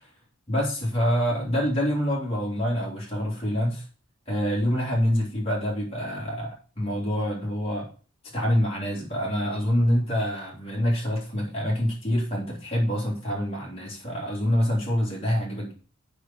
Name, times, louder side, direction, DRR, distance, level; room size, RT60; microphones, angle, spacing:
voice 1, 0.5-3.8 4.3-7.9 8.3-15.7, equal, 25° left, -4 dB, 3.6 m, -26 dB
8.3 x 5.5 x 6.1 m, 0.39 s
head